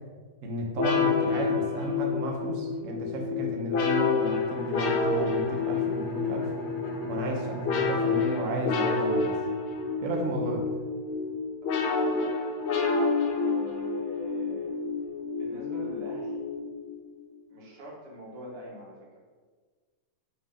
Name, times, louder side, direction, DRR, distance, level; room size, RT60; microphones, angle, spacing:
voice 1, 0.4-6.5 7.1-9.4 10.0-10.7, right 1 dB, 50° right, 1 dB, 1.0 m, -33 dB
sound 1, 0.8-17.0, left 4 dB, 75° left, 1.7 m, -29 dB
Bowed string instrument, 4.2-9.9, right 1 dB, 45° left, 1.9 m, -39 dB
voice 2, 11.6-12.6 13.3-14.8 15.3-16.4 17.5-19.2, equal, 90° right, -3 dB, 2.4 m, -44 dB
8.4 x 3.6 x 3.7 m, 1.5 s
omnidirectional pair, 2.4 m